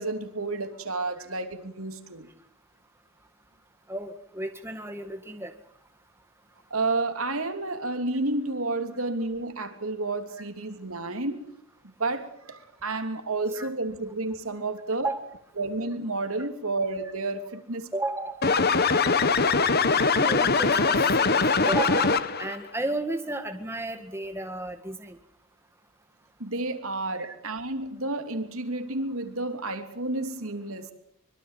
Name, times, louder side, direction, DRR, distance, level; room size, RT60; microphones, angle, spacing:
voice 1, 0.0-2.3 6.7-11.4 11.8-15.1 15.6-17.9 26.4-30.9, right 2 dB, 70° right, 7 dB, 3.1 m, -31 dB
voice 2, 3.9-5.5 13.5-13.7 15.0-15.2 17.9-18.4 19.9-25.2 27.2-27.3, right 2 dB, 10° right, 6 dB, 1.8 m, -33 dB
sound 1, 18.4-22.6, left 4 dB, 45° left, 1.3 m, -22 dB
24.5 x 23.0 x 7.5 m, 0.70 s
head